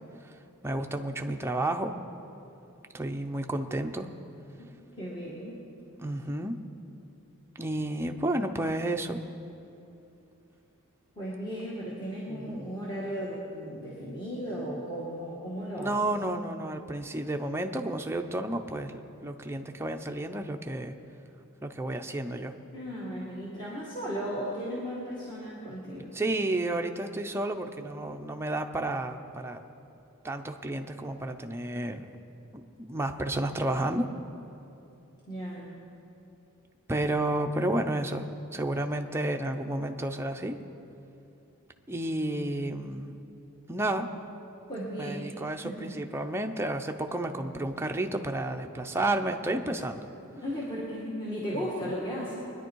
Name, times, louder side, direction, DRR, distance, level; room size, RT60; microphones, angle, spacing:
voice 1, 0.6-1.9 2.9-4.1 6.0-6.6 7.6-9.2 12.3-12.7 15.8-20.9 21.6-22.5 26.1-29.6 30.2-32.1 32.5-34.1 36.9-38.3 38.5-40.6 41.9-43.1 43.7-44.1 45.0-50.1 51.5-51.9, right 1 dB, 10° right, 4 dB, 0.6 m, -31 dB
voice 2, 5.0-5.6 11.2-16.1 22.7-26.1 35.3-35.7 44.7-45.9 50.3-52.3, equal, 20° left, -7 dB, 2.0 m, -36 dB
23.0 x 10.0 x 4.6 m, 2.8 s
head